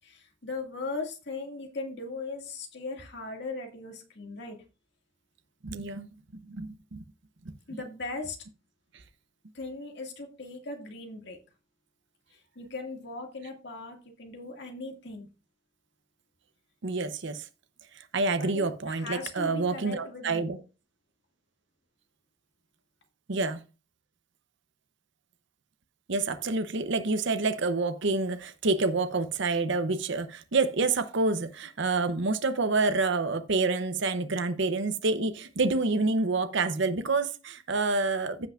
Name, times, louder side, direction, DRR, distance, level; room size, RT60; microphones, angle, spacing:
voice 1, 0.0-4.6 7.7-8.4 9.5-11.4 12.3-15.3 18.4-20.4, left 3 dB, 60° left, 2.1 m, -38 dB
voice 2, 5.6-7.0 16.8-17.4 17.9-20.6 23.3-23.6 26.1-38.5, right 3 dB, 65° right, 0.8 m, -28 dB
15.5 x 5.8 x 2.5 m
head